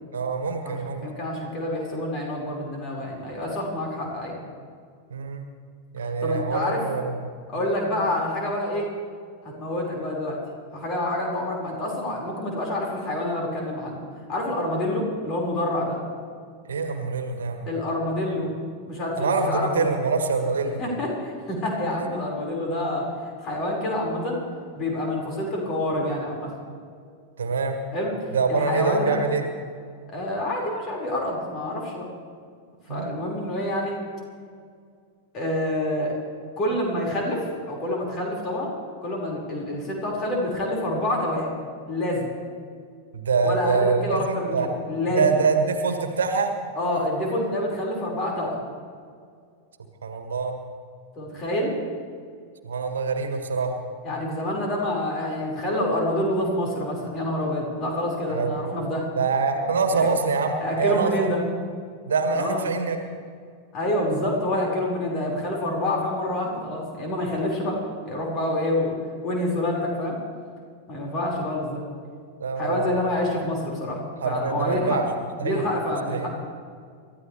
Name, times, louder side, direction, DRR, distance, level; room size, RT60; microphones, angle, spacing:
voice 1, 0.1-1.0 5.1-5.4 5.9-7.3 16.7-17.6 19.2-20.8 21.8-22.1 27.4-27.8 28.3-29.5 32.9-33.2 43.1-44.7 45.1-46.5 50.0-50.5 52.6-53.7 58.3-58.7 59.1-61.3 62.0-63.0 72.4-73.1 74.2-75.0 75.4-75.6 76.1-76.3, right 4 dB, 65° right, 6 dB, 1.7 m, -25 dB
voice 2, 0.6-4.4 6.2-6.8 7.5-8.9 9.6-10.4 10.7-14.0 14.3-16.0 17.7-18.5 18.9-19.9 20.8-23.1 23.4-24.4 24.7-26.5 27.9-28.1 28.5-29.2 30.1-32.1 32.9-34.0 35.3-36.1 36.6-38.7 39.0-41.6 41.9-42.3 43.4-45.4 46.8-48.6 51.2-51.7 54.0-59.1 59.9-60.1 60.6-61.4 62.3-62.8 63.7-67.8 68.1-69.0 69.2-70.2 70.9-71.8 72.6-75.0 75.4-76.3, left 1 dB, 35° left, -2 dB, 5.4 m, -27 dB
29.0 x 13.5 x 3.4 m, 2.2 s
figure-of-eight pair, 90°, 0 cm